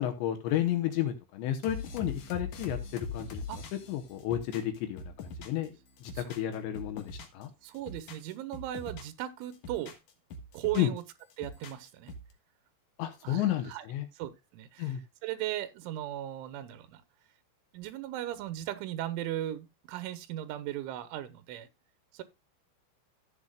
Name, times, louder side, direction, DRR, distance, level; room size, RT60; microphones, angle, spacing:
voice 1, 0.0-3.4 3.7-5.8 6.0-7.5 10.7-10.9 13.0-14.1 14.8-15.0, left 12 dB, 75° left, 3.2 m, -32 dB
sound 1, 1.6-5.7 6.0-7.4 7.7-9.2 9.5-11.0 11.3-12.3, left 3 dB, 60° left, 2.0 m, -42 dB
voice 2, 7.6-10.0 10.5-11.0 11.4-12.1 13.2-13.8 14.2-14.9 15.2-17.0 17.7-21.7 22.1-22.2, right 13 dB, 90° right, 3.3 m, -37 dB
14.5 x 8.0 x 2.3 m
omnidirectional pair, 5.4 m